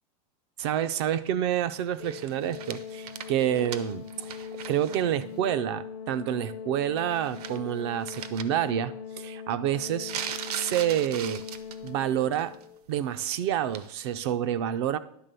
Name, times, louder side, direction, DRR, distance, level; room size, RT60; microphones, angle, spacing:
voice 1, 0.6-10.1 10.5-11.4 11.8-12.5 12.9-15.0, right 10 dB, 40° right, 13 dB, 0.4 m, -28 dB
Organ, 2.0-12.9, left 7 dB, 60° left, 0.6 m, -41 dB
sound 1, 2.0-5.0 5.3-5.4 7.0-7.7 8.1-8.4 10.0-11.9 12.3-12.6 13.7-13.9, right 9 dB, 70° right, 0.8 m, -39 dB
10.5 x 3.6 x 6.7 m, 0.72 s
supercardioid pair, 165°, 21 cm